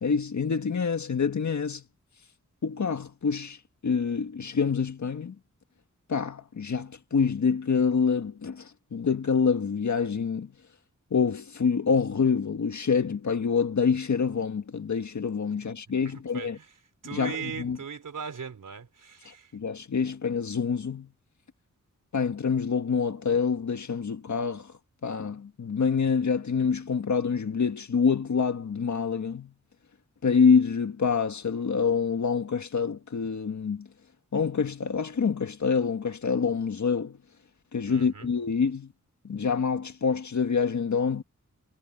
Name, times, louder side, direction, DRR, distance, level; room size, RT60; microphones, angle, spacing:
voice 1, 0.0-1.8 2.6-3.6 3.8-5.4 6.1-10.5 11.1-16.6 17.1-17.8 19.3-21.1 22.1-24.7 25.0-29.5 30.2-33.9 34.3-37.2 37.7-38.9 39.2-41.2, left 5 dB, 65° left, 1.7 m, -26 dB
voice 2, 16.0-16.7 17.0-19.5 37.9-38.3, right 6 dB, 85° right, 4.1 m, -39 dB
wide cardioid pair, 115°, 31 cm